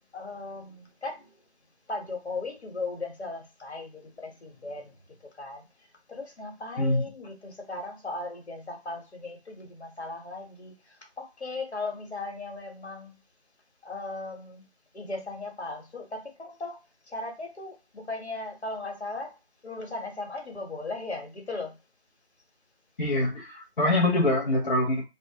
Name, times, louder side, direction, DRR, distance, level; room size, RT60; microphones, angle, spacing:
voice 1, 0.1-1.3 1.9-4.9 5.4-5.7 6.1-13.2 13.8-14.7 14.9-16.8 17.1-19.4 19.6-21.8, left 3 dB, 80° left, 1 dB, 1.3 m, -37 dB
voice 2, 23.0-25.0, left 1 dB, 50° left, -4 dB, 0.7 m, -24 dB
2.4 x 2.1 x 2.9 m, 0.25 s
figure-of-eight pair, 175°, 33 cm